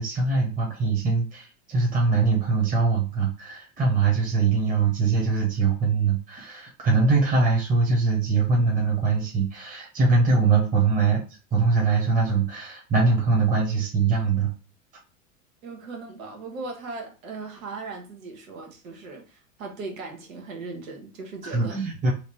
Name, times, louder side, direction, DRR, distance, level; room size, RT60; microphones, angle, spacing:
voice 1, 0.0-11.2 11.5-14.5 21.4-22.1, right 4 dB, 20° right, 1.1 m, -22 dB
voice 2, 15.6-21.8, right 3 dB, 75° right, 1.2 m, -38 dB
3.2 x 2.6 x 3.1 m
hypercardioid pair, 105°, 40 cm